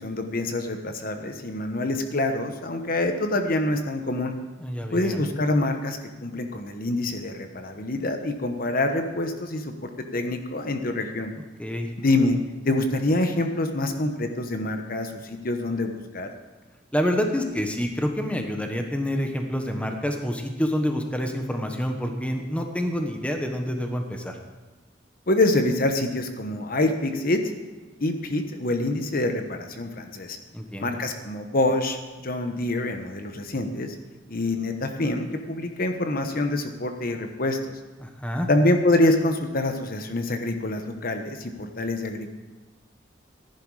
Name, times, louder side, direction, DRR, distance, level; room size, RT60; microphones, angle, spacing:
voice 1, 0.0-4.3 4.9-11.3 12.0-12.4 12.6-16.3 25.3-27.4 28.0-30.4 30.8-32.0 32.2-33.9 34.3-37.7 38.5-42.3, left 2 dB, 50° left, 6 dB, 1.1 m, -26 dB
voice 2, 4.6-5.2 11.6-11.9 16.9-24.4 30.5-30.9 38.0-38.5, equal, 5° left, 3 dB, 1.1 m, -27 dB
15.0 x 11.0 x 4.9 m, 1.2 s
head